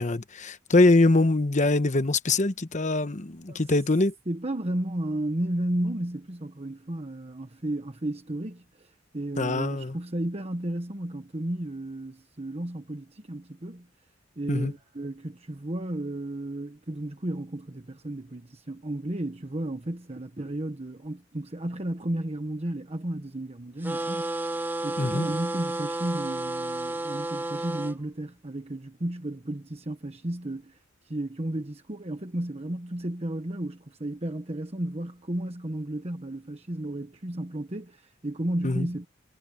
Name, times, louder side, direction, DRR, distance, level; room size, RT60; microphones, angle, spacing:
voice 1, 0.0-4.1 9.4-10.0 14.5-14.7 25.0-25.2 38.6-38.9, left 2 dB, 40° left, 1.1 m, -23 dB
voice 2, 4.3-13.9 14.4-24.4 24.8-30.8 31.0-39.1, right 1 dB, 35° right, 1.2 m, -33 dB
sound 1, 23.8-28.0, right 2 dB, 10° right, 1.4 m, -31 dB
head